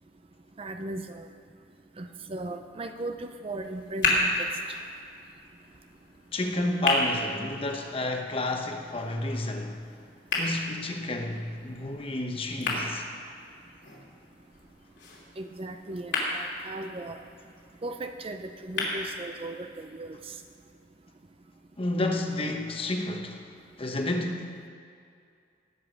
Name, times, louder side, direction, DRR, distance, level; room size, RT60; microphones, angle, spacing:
voice 1, 0.6-1.3 2.0-4.5 15.4-17.2 17.8-20.3, right 2 dB, 30° right, 7 dB, 0.5 m, -37 dB
sound 1, 3.6-19.6, left 2 dB, 75° left, 3.1 m, -34 dB
voice 2, 6.3-9.8 10.3-13.1 21.8-23.4 23.8-24.7, left 1 dB, 30° left, 3 dB, 1.1 m, -30 dB
18.0 x 8.1 x 5.2 m, 2.4 s
head